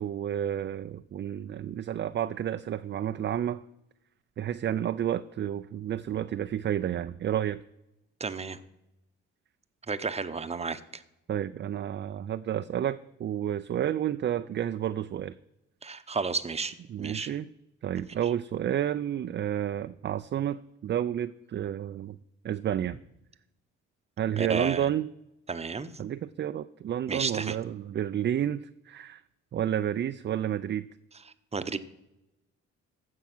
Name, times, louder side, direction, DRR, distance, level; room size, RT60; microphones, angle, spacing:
voice 1, 0.0-3.6 4.4-7.6 11.3-15.4 16.9-17.5 17.8-22.2 22.4-23.0 24.2-25.1 26.0-29.2 29.5-30.9, right 10 dB, 35° right, 11 dB, 0.4 m, -30 dB
voice 2, 8.2-8.6 9.9-11.0 15.8-17.4 24.3-24.9 25.5-25.9 27.1-27.6 31.5-31.8, right 4 dB, 20° right, 12 dB, 0.8 m, -32 dB
15.0 x 5.8 x 6.0 m, 0.90 s
cardioid pair, 90°, 30 cm